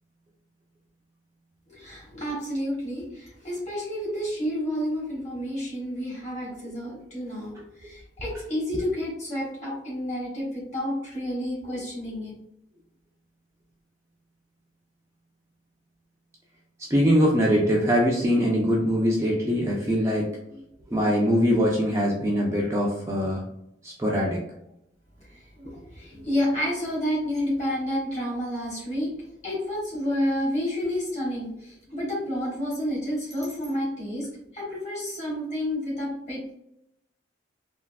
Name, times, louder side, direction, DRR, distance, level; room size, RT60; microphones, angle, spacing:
voice 1, 1.7-12.3 25.2-34.3 34.5-36.5, equal, 40° left, -5 dB, 1.4 m, -30 dB
voice 2, 16.9-23.4 23.8-24.4 26.2-26.3, equal, 15° right, -3 dB, 0.4 m, -23 dB
3.5 x 2.4 x 2.2 m, 0.76 s
head